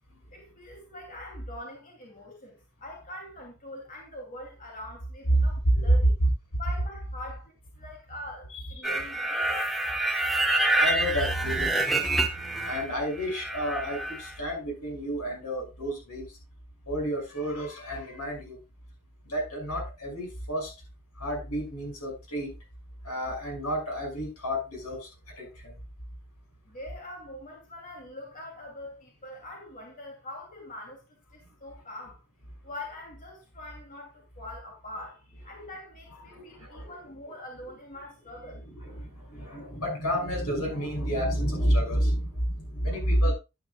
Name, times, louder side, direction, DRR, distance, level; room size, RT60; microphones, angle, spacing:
voice 1, 0.3-6.1 6.6-9.6 26.7-31.0 31.3-32.2 32.6-38.6, left 1 dB, 40° left, 2.8 m, -43 dB
sound 1, 8.8-12.9 13.2-14.3, right 2 dB, ahead, 1.2 m, -27 dB
voice 2, 10.8-11.8 12.6-16.2 16.9-18.6 19.2-20.7 21.2-22.5 23.0-25.1 25.4-25.7 36.3-36.9 38.7-43.3, equal, 90° left, 6.0 m, -29 dB
11.5 x 9.5 x 2.4 m
head